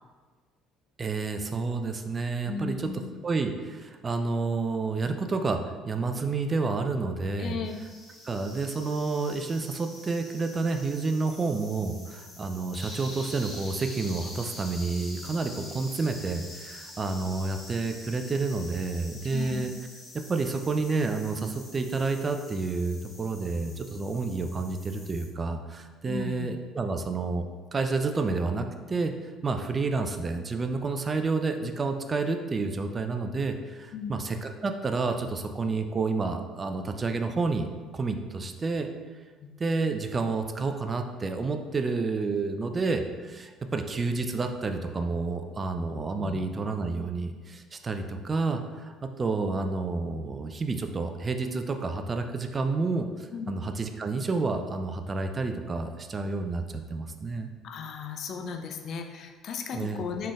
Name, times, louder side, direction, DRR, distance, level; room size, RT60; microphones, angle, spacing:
voice 1, 1.0-2.9 3.2-7.6 8.2-19.7 20.1-27.4 27.7-29.1 29.4-37.7 37.9-38.9 39.6-56.6 56.9-57.5 59.7-60.0, right 3 dB, 30° right, 6 dB, 0.3 m, -30 dB
voice 2, 2.4-3.1 7.4-7.8 15.2-15.7 19.3-19.7 26.0-26.6 33.9-34.2 39.4-39.5 46.2-46.4 53.3-53.6 57.6-60.3, left 6 dB, 50° left, 4 dB, 0.3 m, -36 dB
sound 1, 7.6-25.3, left 1 dB, 25° left, 0.9 m, -46 dB
3.7 x 3.2 x 2.4 m, 1.4 s
figure-of-eight pair, 55°, 0 cm